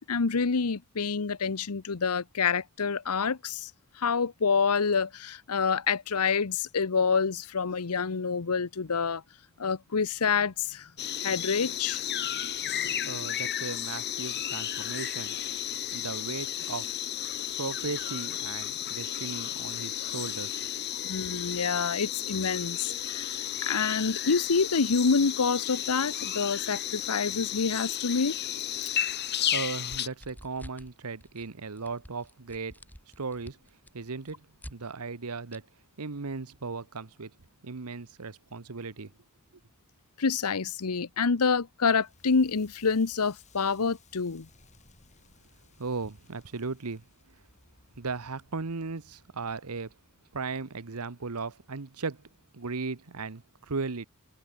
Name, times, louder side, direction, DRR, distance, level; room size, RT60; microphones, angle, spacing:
voice 1, 0.1-3.7 4.0-9.2 9.6-10.9 11.2-12.0 21.0-23.4 23.6-28.3 40.2-44.5, left 5 dB, 85° left, 0.9 m, -27 dB
sound 1, 11.0-30.1, left 10 dB, 50° left, 2.8 m, -33 dB
voice 2, 13.1-15.3 15.9-16.9 17.6-20.7 29.5-32.7 33.2-33.6 33.9-35.6 36.0-37.3 37.6-39.1 45.8-47.4 48.0-49.9 50.3-54.1, right 4 dB, 85° right, 1.0 m, -37 dB
sound 2, 29.9-30.9 31.2-31.5 31.8-34.8 35.5-35.6, equal, 10° left, 6.2 m, -48 dB
Crackle, 41.9-50.9, left 3 dB, 30° left, 6.6 m, -61 dB
head